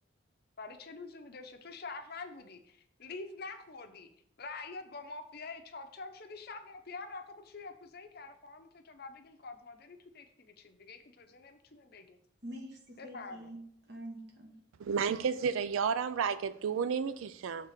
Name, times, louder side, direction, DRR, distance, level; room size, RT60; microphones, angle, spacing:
voice 1, 0.6-4.1 4.4-12.2 13.0-13.5, left 3 dB, 50° left, 7 dB, 0.7 m, -46 dB
voice 2, 12.4-14.6, right 1 dB, 55° right, 2 dB, 1.4 m, -46 dB
voice 3, 14.8-17.7, right 6 dB, 85° right, 13 dB, 0.3 m, -32 dB
6.5 x 3.6 x 5.6 m, 0.69 s
head